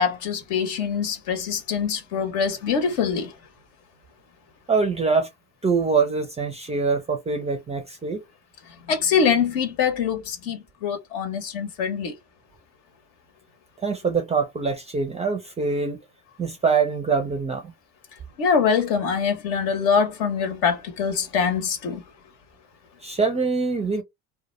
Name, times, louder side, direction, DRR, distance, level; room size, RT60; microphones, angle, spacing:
voice 1, 0.0-3.3 8.9-12.1 18.4-22.0, left 6 dB, 65° left, 0.9 m, -24 dB
voice 2, 4.7-5.3 5.6-8.2 13.8-16.0 16.4-17.7 23.0-24.0, right 4 dB, 15° right, 0.4 m, -24 dB
2.2 x 2.1 x 2.9 m
hypercardioid pair, 75°, 40 cm